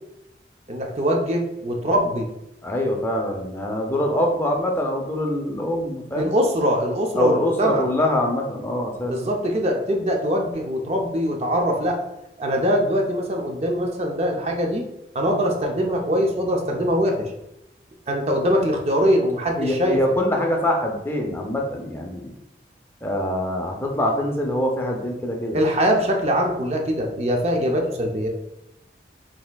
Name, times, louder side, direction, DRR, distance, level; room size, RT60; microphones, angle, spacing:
voice 1, 0.7-2.3 6.2-7.8 9.1-12.0 12.4-14.8 15.1-17.3 18.1-20.0 25.5-28.3, equal, 35° right, 2 dB, 0.5 m, -22 dB
voice 2, 2.6-6.3 7.1-9.1 19.6-22.3 23.0-25.6, left 1 dB, 15° left, 1 dB, 0.5 m, -24 dB
4.1 x 3.5 x 2.2 m, 0.87 s
head